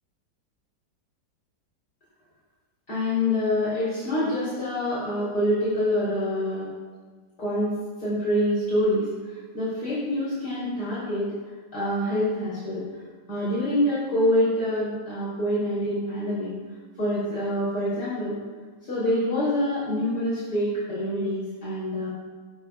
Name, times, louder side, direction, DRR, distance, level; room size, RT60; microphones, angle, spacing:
voice 1, 2.9-6.7 7.4-7.7 8.0-11.3 11.7-13.0 13.3-16.5 17.0-18.4 18.8-22.1, left 1 dB, 70° left, -10 dB, 4.0 m, -26 dB
18.5 x 11.5 x 2.4 m, 1.5 s
omnidirectional pair, 1.9 m